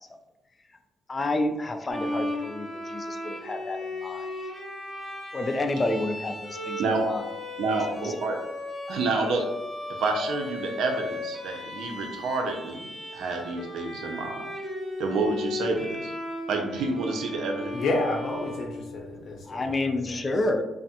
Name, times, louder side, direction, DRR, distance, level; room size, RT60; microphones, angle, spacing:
voice 1, 1.1-4.3 5.3-7.3 8.0-8.1 19.5-20.6, left 2 dB, 30° left, 6 dB, 0.3 m, -29 dB
Bowed string instrument, 1.9-19.3, left 2 dB, 5° right, 1.0 m, -36 dB
voice 2, 7.6-8.4 8.9-9.5 10.0-12.9 13.1-14.5 15.0-16.1 16.5-17.7, right 3 dB, 75° right, 3 dB, 0.5 m, -28 dB
voice 3, 17.7-20.2, left 2 dB, 65° left, 0 dB, 0.8 m, -30 dB
3.3 x 2.0 x 2.8 m, 0.98 s
cardioid pair, 90°, 0 cm